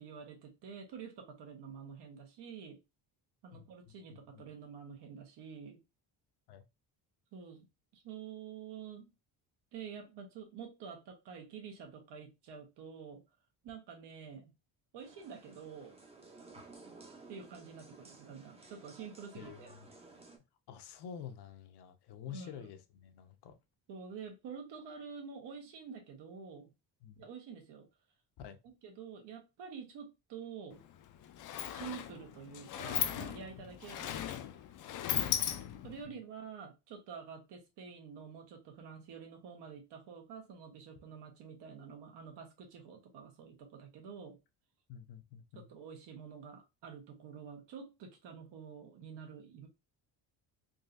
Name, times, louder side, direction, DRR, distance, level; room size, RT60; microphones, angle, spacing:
voice 1, 0.0-2.8 3.4-5.8 7.3-7.7 7.9-9.1 9.7-13.2 13.6-14.5 14.9-16.0 17.3-19.7 22.3-22.7 23.9-26.7 27.2-27.9 28.6-30.8 31.7-34.4 35.8-44.4 45.5-49.7, right 6 dB, 80° right, 1.3 m, -48 dB
voice 2, 3.5-4.5 6.5-6.6 16.5-16.7 19.3-19.9 20.7-23.6 27.0-27.2 28.4-28.6 33.6-33.7 35.1-36.2 44.9-45.7, left 8 dB, 70° left, 0.8 m, -49 dB
sound 1, 15.0-20.4, right 3 dB, 15° right, 0.6 m, -56 dB
Sliding door, 30.7-30.8 31.1-36.0, left 10 dB, 50° left, 0.4 m, -37 dB
3.8 x 2.7 x 2.6 m
cardioid pair, 170°, 41 cm